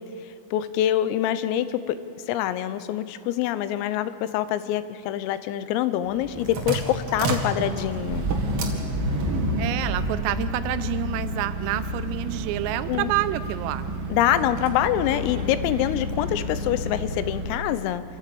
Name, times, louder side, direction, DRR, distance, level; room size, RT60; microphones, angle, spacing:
voice 1, 0.5-2.0 2.3-8.3 12.9-13.1 14.1-18.0, left 12 dB, 85° left, 13 dB, 3.5 m, -25 dB
sound 1, 6.1-17.6, right 1 dB, 50° right, 1.6 m, -29 dB
voice 2, 9.6-13.9, right 14 dB, 85° right, 12 dB, 3.4 m, -28 dB
27.0 x 14.5 x 8.5 m, 2.4 s
omnidirectional pair, 5.9 m